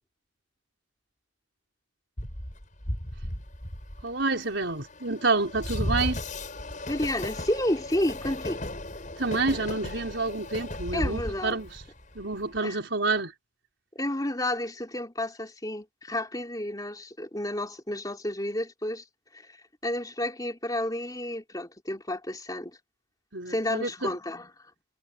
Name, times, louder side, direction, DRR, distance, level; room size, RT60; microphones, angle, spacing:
Train, 2.2-12.6, left 1 dB, 40° left, 6.5 m, -35 dB
voice 1, 4.0-6.2 9.2-11.8 12.1-13.3 23.3-24.1, right 3 dB, 65° right, 4.8 m, -28 dB
voice 2, 6.9-8.6 10.9-11.6 12.6-12.8 13.9-19.0 19.3-19.6 19.8-22.8 23.5-24.5, left 1 dB, 20° left, 3.4 m, -31 dB
head